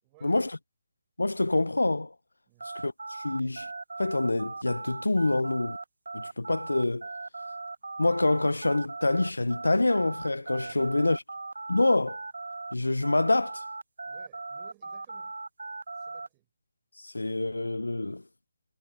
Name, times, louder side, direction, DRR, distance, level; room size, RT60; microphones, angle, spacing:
voice 1, 0.0-0.4 2.5-2.7 10.6-11.2 14.0-15.4 16.0-16.5, right 24 dB, 25° right, 4.9 m, -59 dB
voice 2, 1.2-2.1 2.8-3.7 4.0-5.8 6.1-7.1 8.0-11.2 11.7-12.2 12.7-13.6 17.0-18.2, left 2 dB, 85° left, 0.4 m, -26 dB
sound 1, 2.6-12.7 13.0-16.3, right 3 dB, 75° right, 0.7 m, -39 dB
figure-of-eight pair, 145°, 0 cm